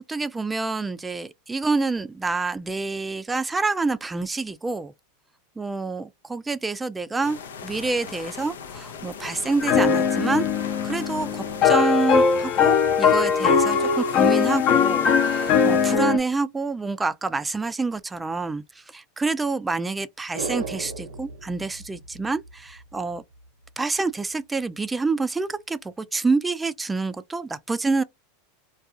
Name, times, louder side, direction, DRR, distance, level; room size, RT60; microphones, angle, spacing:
voice 1, 0.1-4.9 5.6-10.5 10.8-18.6 18.9-23.2 23.8-28.0, right 3 dB, 10° right, 0.3 m, -27 dB
sound 1, 7.2-16.0, left 6 dB, 90° left, 0.5 m, -37 dB
sound 2, 9.6-16.2, left 6 dB, 50° left, 0.7 m, -20 dB
sound 3, 20.3-22.8 23.1-23.2, right 4 dB, 90° right, 0.7 m, -35 dB
2.3 x 2.3 x 2.7 m
hypercardioid pair, 115°, 0 cm